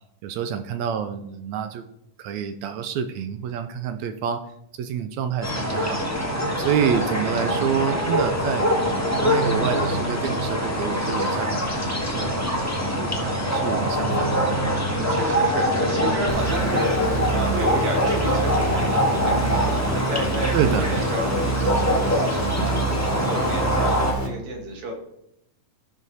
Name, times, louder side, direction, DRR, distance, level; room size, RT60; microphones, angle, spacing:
voice 1, 0.2-1.8 2.2-4.4 4.8-6.0 6.6-8.7 9.2-11.7 12.1-12.6 13.0-14.3 20.5-20.9, right 8 dB, 80° right, 9 dB, 1.6 m, -27 dB
sound 1, 5.4-24.1, equal, 25° left, 0.3 m, -24 dB
voice 2, 7.5-8.0 14.9-24.9, right 1 dB, 60° right, 1 dB, 3.1 m, -31 dB
sound 2, 16.3-24.3, right 3 dB, 30° right, 0.8 m, -28 dB
14.0 x 6.3 x 4.1 m, 0.81 s
omnidirectional pair, 3.8 m